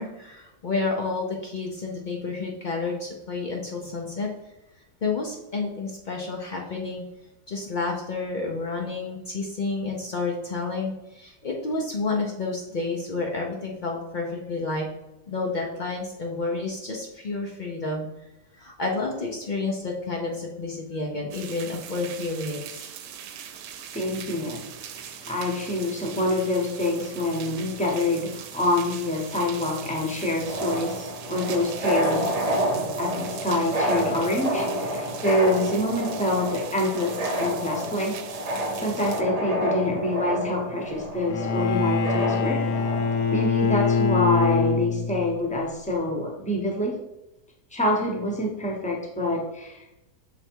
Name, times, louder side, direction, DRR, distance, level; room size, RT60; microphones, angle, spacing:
voice 1, 0.0-4.3 5.0-7.0 7.5-14.9 15.3-18.1 18.6-22.9, left 3 dB, 90° left, 0 dB, 0.4 m, -30 dB
sound 1, 21.3-39.2, right 8 dB, 80° right, 1.2 m, -41 dB
voice 2, 23.9-24.7 25.0-32.3 33.0-38.2 38.8-42.7 43.3-47.0 47.7-49.8, left 1 dB, 5° left, 0 dB, 0.6 m, -26 dB
sound 2, 30.4-43.4, equal, 50° right, 0.4 m, -29 dB
Bowed string instrument, 41.3-45.4, left 5 dB, 70° left, 1.0 m, -24 dB
6.4 x 3.3 x 4.5 m, 0.92 s
omnidirectional pair, 1.8 m